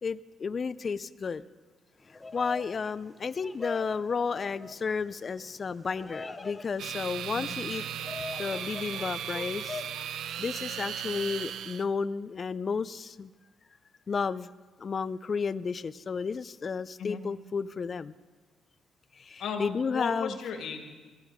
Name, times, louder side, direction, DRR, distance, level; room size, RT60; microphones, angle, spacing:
voice 1, 0.0-1.5 2.3-7.8 8.4-9.9 10.4-13.3 14.1-14.5 14.8-18.1 19.1-20.4, left 5 dB, 40° left, 15 dB, 0.5 m, -32 dB
Bird vocalization bird call bird song, 2.0-10.1, left 3 dB, 25° left, 1.0 m, -43 dB
sound 1, 6.8-11.8, right 9 dB, 75° right, 0.6 m, -36 dB
voice 2, 19.4-20.8, left 6 dB, 75° left, 4 dB, 2.4 m, -35 dB
18.5 x 15.5 x 5.0 m, 1.3 s
cardioid pair, 90°, 0 cm